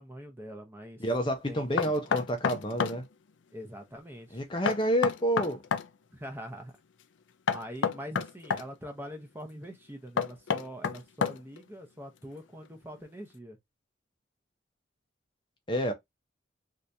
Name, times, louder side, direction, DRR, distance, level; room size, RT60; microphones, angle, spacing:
voice 1, 0.0-1.0 1.5-1.6 3.5-4.4 6.1-6.7 7.5-13.6, equal, 10° right, 0.7 m, -43 dB
voice 2, 1.0-3.0 4.3-5.6 15.7-15.9, equal, 25° left, 0.6 m, -29 dB
Knock, 1.8-3.0 4.7-5.9 7.5-8.7 10.2-11.6, left 6 dB, 70° left, 0.4 m, -29 dB
2.8 x 2.6 x 3.3 m
head